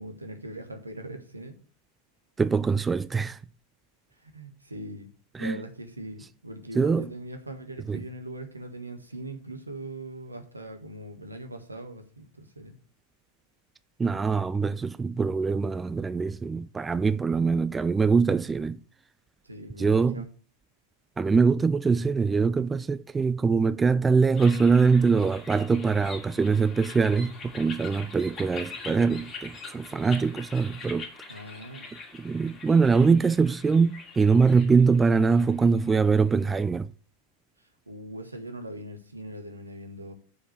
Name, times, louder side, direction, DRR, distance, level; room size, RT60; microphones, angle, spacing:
voice 1, 0.0-1.6 4.2-5.1 5.4-12.7 19.4-20.3 31.3-31.9 37.9-40.1, right 1 dB, 80° right, 1.3 m, -40 dB
voice 2, 2.4-3.4 5.3-5.6 6.8-7.1 7.9-8.0 14.0-18.8 19.8-20.2 21.2-31.1 32.2-36.9, right 5 dB, 15° right, 0.3 m, -23 dB
sound 1, 24.3-36.6, left 4 dB, 25° left, 2.3 m, -44 dB
6.6 x 5.0 x 6.5 m
figure-of-eight pair, 90°, 0 cm